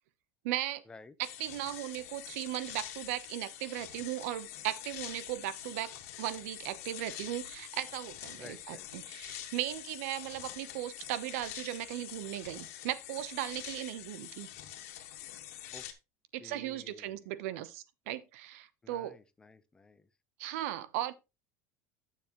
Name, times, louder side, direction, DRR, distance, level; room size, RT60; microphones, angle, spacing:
voice 1, 0.4-0.8 1.2-14.5 16.3-19.2 20.4-21.1, right 13 dB, 75° right, 0.9 m, -37 dB
sound 1, 1.2-15.9, left 12 dB, 85° left, 1.7 m, -46 dB
voice 2, 8.4-8.9 15.7-15.9 16.4-17.3 18.8-20.1, left 3 dB, 10° left, 0.7 m, -53 dB
9.6 x 7.0 x 3.0 m
supercardioid pair, 150°, 8 cm